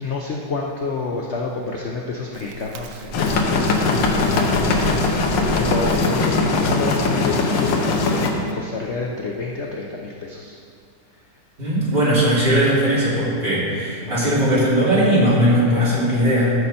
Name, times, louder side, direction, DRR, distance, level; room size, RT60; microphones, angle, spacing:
voice 1, 0.0-3.2 3.8-5.0 5.2-10.6 14.0-14.2, left 3 dB, 55° left, -1 dB, 0.8 m, -29 dB
Chirp tweet, 2.3-8.5, right 5 dB, 65° right, 0.8 m, -35 dB
sound 1, 3.1-8.3, left 3 dB, 85° left, 1.7 m, -20 dB
voice 2, 11.6-16.5, equal, 30° right, -9 dB, 3.1 m, -18 dB
14.0 x 6.5 x 4.3 m, 2.3 s
omnidirectional pair, 1.9 m